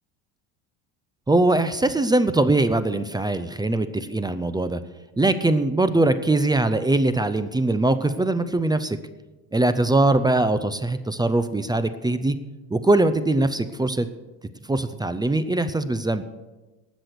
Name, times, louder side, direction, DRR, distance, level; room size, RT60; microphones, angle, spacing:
voice 1, 1.3-4.8 5.2-9.0 9.5-12.4 12.7-14.1 14.7-16.2, right 2 dB, 10° right, 12 dB, 0.5 m, -21 dB
18.0 x 6.2 x 6.6 m, 1.1 s
supercardioid pair, 105°, 43 cm